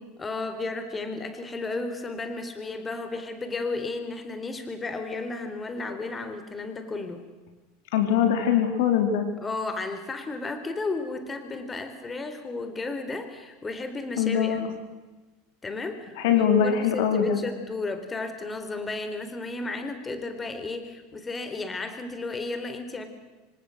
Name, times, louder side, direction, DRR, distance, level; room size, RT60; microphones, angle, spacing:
voice 1, 0.2-7.2 9.4-14.7 15.6-23.1, left 3 dB, 20° left, 8 dB, 4.0 m, -33 dB
voice 2, 7.9-9.2 14.2-14.7 16.2-17.4, left 8 dB, 65° left, 6 dB, 3.9 m, -22 dB
28.5 x 26.0 x 6.6 m, 1.2 s
hypercardioid pair, 80°, 0 cm